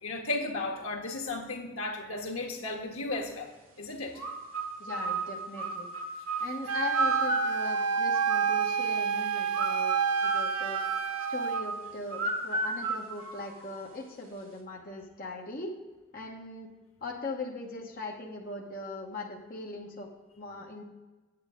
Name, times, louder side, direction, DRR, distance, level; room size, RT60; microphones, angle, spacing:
voice 1, 0.0-3.5 3.8-4.2, left 2 dB, 80° left, 1 dB, 1.4 m, -34 dB
sound 1, 4.1-8.9 9.5-14.0, right 3 dB, 70° right, 1.7 m, -34 dB
voice 2, 4.8-5.9 6.4-10.8 11.3-15.7 16.1-16.7 17.0-20.1 20.4-20.8, left 2 dB, 40° left, -1 dB, 1.1 m, -40 dB
Wind instrument woodwind instrument, 6.7-11.6, right 6 dB, 90° right, 0.5 m, -29 dB
8.8 x 8.1 x 3.7 m, 1.2 s
head